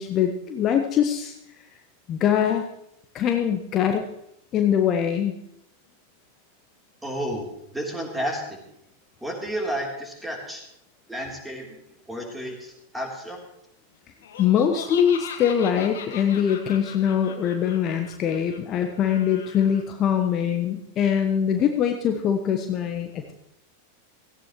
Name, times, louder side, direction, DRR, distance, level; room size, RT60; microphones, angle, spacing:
voice 1, 0.0-1.3 2.1-2.6 3.1-4.1 4.5-5.3 14.4-23.3, left 8 dB, 30° left, 5 dB, 1.1 m, -23 dB
voice 2, 7.0-8.6 9.2-10.6 11.1-11.8 12.1-13.4, equal, 5° right, 0 dB, 3.5 m, -31 dB
Laughter, 14.2-19.8, left 7 dB, 60° left, 1.6 m, -40 dB
17.0 x 15.5 x 3.2 m, 0.79 s
figure-of-eight pair, 90°, 0 cm